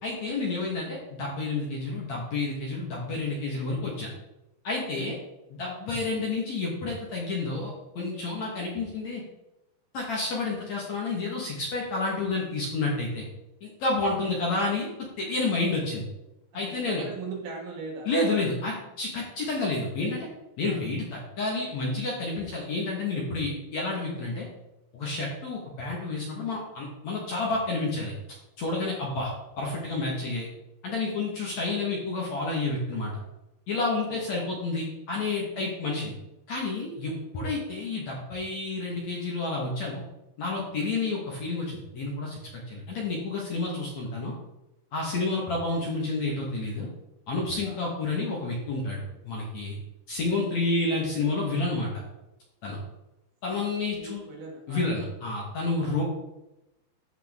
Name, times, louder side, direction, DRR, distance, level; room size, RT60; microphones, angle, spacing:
voice 1, 0.0-4.1 4.6-5.2 5.5-9.2 9.9-13.2 13.6-14.9 15.2-16.1 16.5-17.0 18.1-20.3 20.6-24.5 24.9-28.1 28.6-29.3 29.6-30.5 30.8-33.1 33.7-36.2 36.5-40.0 40.4-44.3 44.9-46.9 47.3-49.8 50.1-51.9 52.6-52.8 53.4-54.2 54.7-56.0, left 3 dB, 55° left, -3 dB, 2.2 m, -30 dB
voice 2, 16.5-18.4 20.7-20.9 28.9-29.1 34.1-34.5 35.4-35.6 37.0-37.2 47.6-47.8 53.5-54.9 55.8-56.0, right 4 dB, 70° right, 0 dB, 3.0 m, -41 dB
14.0 x 4.7 x 3.6 m, 0.92 s
omnidirectional pair, 4.7 m